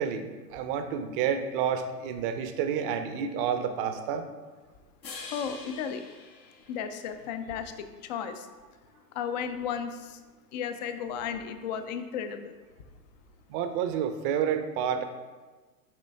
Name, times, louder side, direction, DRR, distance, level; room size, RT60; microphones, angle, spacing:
voice 1, 0.0-4.3 13.5-15.0, right 8 dB, 35° right, 8 dB, 0.7 m, -29 dB
sound 1, 5.0-7.4, left 4 dB, 90° left, 1.6 m, -45 dB
voice 2, 5.2-6.1 6.7-8.5 9.1-10.2 10.5-12.5, left 7 dB, 30° left, 9 dB, 0.4 m, -34 dB
7.6 x 5.0 x 3.5 m, 1.3 s
hypercardioid pair, 115°, 49 cm